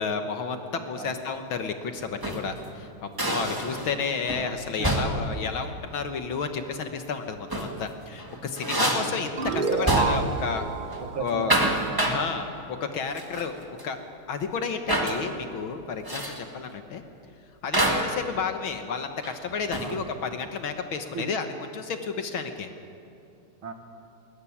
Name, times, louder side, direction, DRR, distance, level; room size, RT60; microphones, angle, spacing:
voice 1, 0.0-10.6 10.9-11.6 12.1-14.0 14.3-17.0 17.6-21.5 21.7-22.7, left 5 dB, 70° left, 7 dB, 2.0 m, -31 dB
sound 1, 2.0-2.5 3.2-4.0 4.3-4.5 4.8-5.3 7.3-7.8 8.2-10.4 10.7-11.0 11.3-12.3 13.2-13.5 13.8-13.9 14.9-15.2 16.0-16.4 17.7-18.2 19.2-20.0, right 1 dB, 10° right, 1.8 m, -27 dB
voice 2, 4.8-5.4 8.8-9.2 11.0-12.1 19.8-20.1 21.1-21.4 23.6-23.7, right 4 dB, 65° right, 6 dB, 2.6 m, -37 dB
sound 2, 9.4-12.6, right 5 dB, 45° right, 0.6 m, -30 dB
21.0 x 20.5 x 9.9 m, 2.6 s
omnidirectional pair, 2.4 m